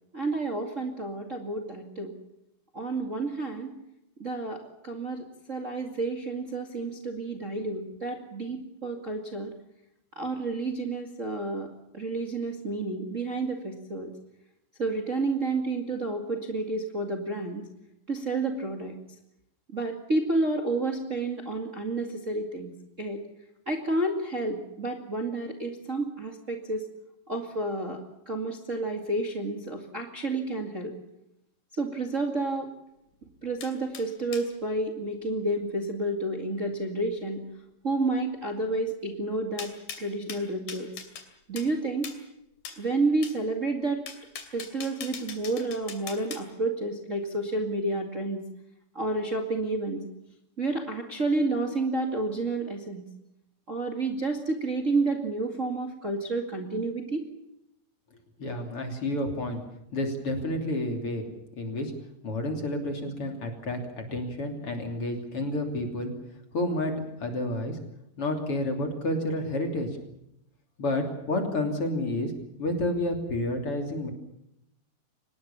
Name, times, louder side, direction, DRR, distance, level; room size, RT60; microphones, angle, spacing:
voice 1, 0.1-2.1 2.7-3.7 4.2-9.5 10.2-11.7 11.9-14.1 14.8-17.6 18.1-19.0 19.7-22.7 23.0-23.2 23.7-26.8 27.3-30.9 31.8-32.7 33.4-37.4 37.8-39.7 40.0-40.9 41.5-42.1 42.8-44.0 44.5-48.4 48.9-50.0 50.6-53.0 53.7-57.2, right 2 dB, 25° right, 3 dB, 2.1 m, -30 dB
sound 1, 33.6-34.5 39.6-41.3 41.6-41.7 42.0-42.2 42.6-42.8 43.2-43.4 44.1-46.4, left 7 dB, 80° left, 4.5 m, -41 dB
voice 2, 58.4-59.6 59.9-61.2 61.6-61.9 62.2-63.8 64.1-66.1 66.5-66.9 67.2-67.8 68.2-69.9 70.8-72.3 72.6-74.1, left 1 dB, 40° left, 4 dB, 3.8 m, -30 dB
25.0 x 20.0 x 7.2 m, 0.81 s
omnidirectional pair, 3.9 m